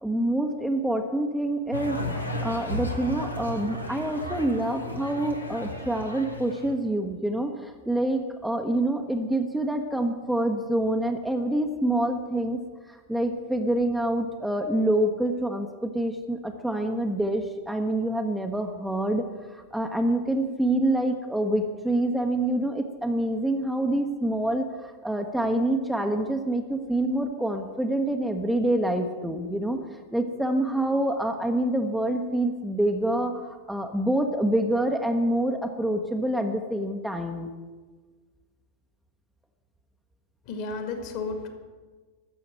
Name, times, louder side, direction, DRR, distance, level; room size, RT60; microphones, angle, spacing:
voice 1, 0.0-12.6 12.9-37.5, right 1 dB, ahead, 3 dB, 1.0 m, -26 dB
sound 1, 1.7-6.7, left 1 dB, 85° left, 1.6 m, -34 dB
voice 2, 40.5-41.5, left 4 dB, 45° left, 6 dB, 2.2 m, -32 dB
13.0 x 7.0 x 9.0 m, 1.4 s
figure-of-eight pair, 90°, 0 cm